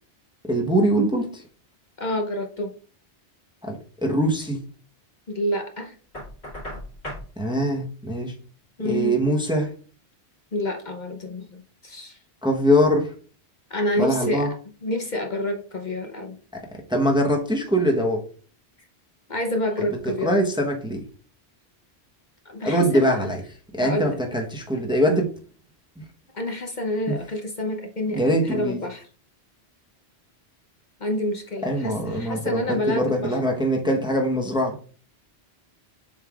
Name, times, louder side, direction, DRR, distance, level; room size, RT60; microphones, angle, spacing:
voice 1, 0.5-1.4 3.7-4.6 7.4-8.3 8.8-9.7 12.4-13.1 14.0-14.5 16.5-18.2 19.8-21.0 22.6-23.4 23.7-25.3 27.1-27.2 28.1-28.8 31.6-34.8, equal, 5° right, 0.9 m, -23 dB
voice 2, 2.0-2.7 5.3-5.9 8.8-9.1 10.5-12.2 13.7-14.5 14.8-16.4 19.3-20.3 22.4-23.3 23.8-24.2 26.3-29.1 31.0-33.4, left 1 dB, 45° left, 0.9 m, -28 dB
Knock, 6.1-7.3, equal, 70° left, 2.7 m, -36 dB
7.3 x 5.5 x 2.4 m
omnidirectional pair, 1.1 m